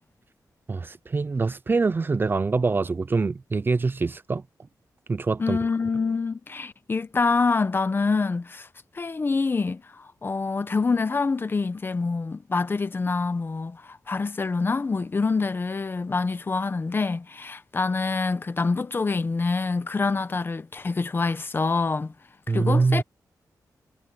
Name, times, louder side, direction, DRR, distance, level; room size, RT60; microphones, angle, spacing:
voice 1, 0.7-4.4 5.1-5.6 22.5-23.0, right 4 dB, 30° right, 0.6 m, -24 dB
voice 2, 5.4-8.7 8.9-22.1 22.5-23.0, left 4 dB, 30° left, 1.0 m, -26 dB
wide cardioid pair, 135°, 7 cm